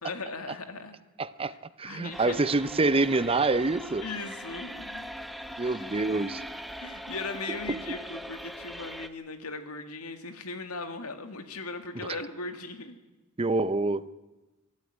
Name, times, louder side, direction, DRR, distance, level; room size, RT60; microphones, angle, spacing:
voice 1, 0.0-1.0 1.8-2.4 4.0-5.1 5.3-5.9 6.8-13.0, left 3 dB, 85° left, 8 dB, 2.1 m, -38 dB
voice 2, 1.2-1.5 1.8-4.1 5.6-6.4 7.7-7.8 13.4-14.1, right 3 dB, 25° right, 15 dB, 0.6 m, -26 dB
sound 1, 2.1-9.1, equal, ahead, 0.9 m, -41 dB
24.0 x 13.0 x 9.2 m, 1.1 s
head